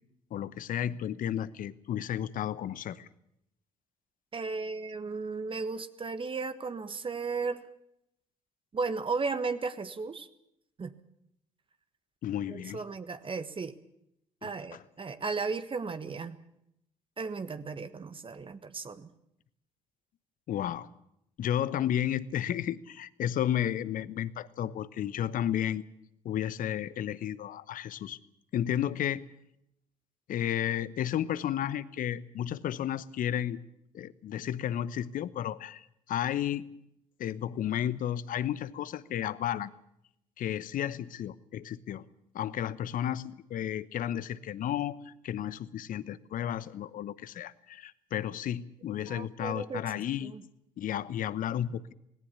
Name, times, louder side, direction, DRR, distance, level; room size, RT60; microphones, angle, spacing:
voice 1, 0.3-3.1 12.2-12.8 14.4-14.8 20.5-20.9 21.4-25.8 26.2-28.2 28.5-29.2 30.3-33.6 33.9-36.6 37.2-39.7 40.4-42.0 42.3-50.3 50.8-51.9, left 10 dB, 50° left, 18 dB, 1.0 m, -33 dB
voice 2, 4.3-7.6 8.7-10.3 10.8-10.9 12.5-13.8 14.4-16.4 17.2-19.1 49.1-49.8 50.2-50.4, right 4 dB, 30° right, 12 dB, 1.4 m, -35 dB
19.0 x 18.0 x 8.4 m, 0.78 s
figure-of-eight pair, 50°, 17 cm